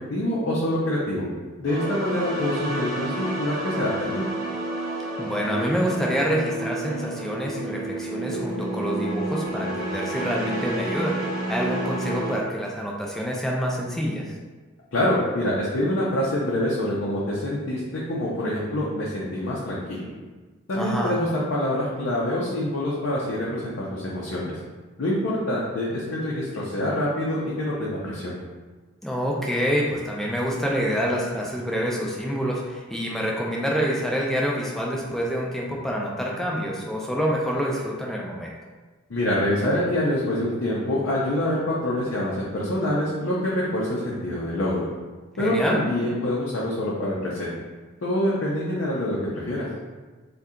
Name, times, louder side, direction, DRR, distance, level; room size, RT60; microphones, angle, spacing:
voice 1, 0.1-1.3 1.6-4.3 14.9-20.1 20.7-24.6 25.0-28.4 39.1-44.8 45.4-47.5 48.0-49.7, left 1 dB, 65° left, -6 dB, 0.5 m, -26 dB
sound 1, 1.7-12.4, right 2 dB, 40° right, 0.8 m, -30 dB
voice 2, 5.2-14.3 20.8-21.1 29.0-38.5 45.4-45.8, equal, ahead, -3 dB, 0.3 m, -27 dB
2.7 x 2.2 x 3.6 m, 1.3 s
head